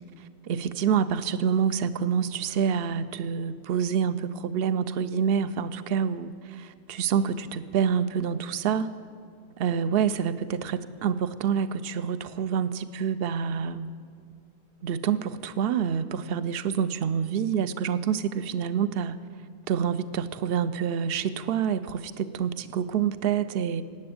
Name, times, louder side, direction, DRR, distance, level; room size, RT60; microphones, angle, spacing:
voice 1, 0.2-8.9 9.6-13.9 14.8-19.2 19.7-23.8, right 7 dB, 65° right, 14 dB, 0.8 m, -27 dB
18.0 x 7.8 x 8.7 m, 2.1 s
omnidirectional pair, 1.1 m